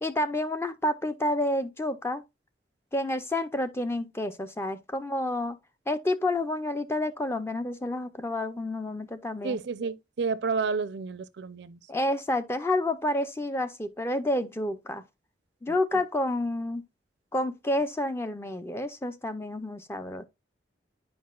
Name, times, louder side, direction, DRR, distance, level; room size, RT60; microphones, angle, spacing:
voice 1, 0.0-2.2 2.9-5.6 5.9-9.6 11.9-15.0 15.6-16.8 17.3-20.2, left 1 dB, 15° left, 0.4 m, -29 dB
voice 2, 9.4-11.8, right 4 dB, 65° right, 0.5 m, -30 dB
9.4 x 4.9 x 2.3 m
head